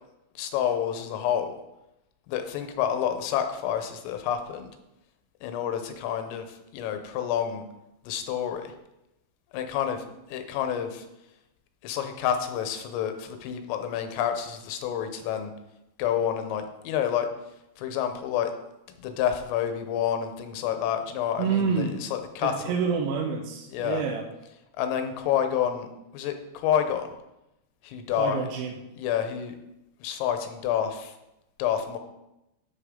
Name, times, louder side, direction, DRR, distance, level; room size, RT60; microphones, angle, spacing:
voice 1, 0.4-1.5 2.3-4.7 5.4-7.6 8.1-8.7 9.5-11.1 11.8-15.5 16.0-17.3 17.8-18.5 19.0-22.8 23.7-24.0 24.8-25.9 26.1-27.1 27.8-28.4 29.0-29.6 30.0-31.1 31.6-32.0, left 9 dB, 85° left, 7 dB, 3.5 m, -28 dB
voice 2, 21.4-22.0 22.4-24.3 28.1-28.7, right 5 dB, 80° right, 2 dB, 3.0 m, -28 dB
10.0 x 8.1 x 3.7 m, 0.91 s
omnidirectional pair, 5.8 m